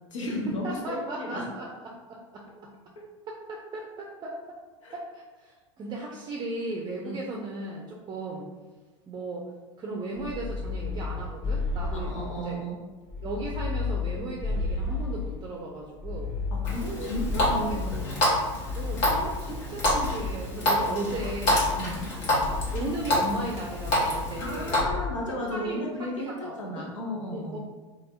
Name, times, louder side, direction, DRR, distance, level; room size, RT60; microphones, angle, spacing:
voice 1, 0.1-1.5 4.8-4.9 7.0-7.2 12.0-12.8 16.5-18.2 21.8-22.2 24.4-27.6, left 1 dB, 80° left, -1 dB, 0.8 m, -34 dB
voice 2, 0.6-2.7 3.3-4.6 4.9-8.5 9.1-9.5 9.8-12.6 13.2-16.3 16.9-17.2 17.5-17.8 18.7-21.7 22.5-25.0 25.5-26.9 27.3-27.6, right 2 dB, 25° right, -2 dB, 0.5 m, -36 dB
sound 1, 10.1-12.6 13.1-15.5 16.0-18.1 18.6-20.5 21.1-22.1 22.4-22.9 23.8-24.5 24.8-25.2, left 4 dB, 40° left, 0.8 m, -33 dB
Water tap faucet, 16.6-24.8, left 1 dB, 55° left, 1.3 m, -27 dB
3.2 x 2.4 x 2.7 m, 1.3 s
hypercardioid pair, 90°, 16 cm